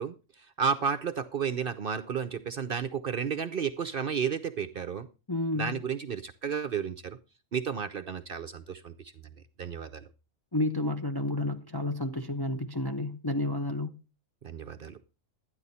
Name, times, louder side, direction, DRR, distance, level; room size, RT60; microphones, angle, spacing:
voice 1, 0.0-5.1 5.5-7.2 7.5-8.9 9.6-10.0 14.4-15.0, right 6 dB, 50° right, 0.7 m, -32 dB
voice 2, 5.3-5.8 10.5-14.0, left 2 dB, 25° left, 0.5 m, -31 dB
12.5 x 9.8 x 4.1 m
omnidirectional pair, 1.4 m